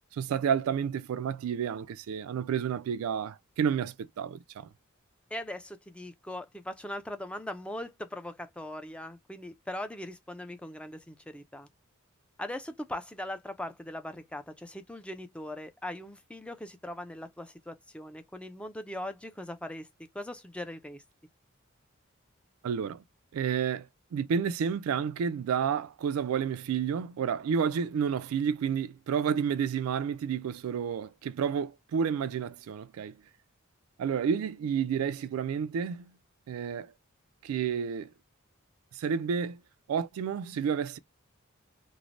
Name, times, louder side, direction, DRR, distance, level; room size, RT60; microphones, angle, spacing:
voice 1, 0.1-4.7 22.6-23.0 23.3-33.2 34.0-36.1 36.5-36.9 37.4-38.1 38.9-39.6 39.9-41.0, right 7 dB, 75° right, 0.3 m, -30 dB
voice 2, 5.3-11.7 12.4-19.9 20.1-21.0, left 1 dB, 5° left, 0.4 m, -40 dB
3.0 x 2.0 x 2.5 m
head